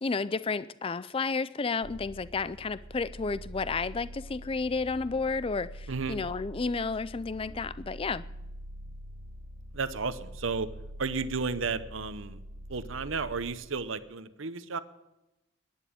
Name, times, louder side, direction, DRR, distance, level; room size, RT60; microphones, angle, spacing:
voice 1, 0.0-8.2, left 4 dB, 25° left, 0.4 m, -31 dB
sound 1, 1.8-13.5, equal, 45° right, 1.3 m, -44 dB
voice 2, 5.9-6.2 9.7-10.7 11.0-12.4 12.7-14.8, right 4 dB, 65° right, 0.8 m, -33 dB
11.0 x 10.5 x 8.5 m
head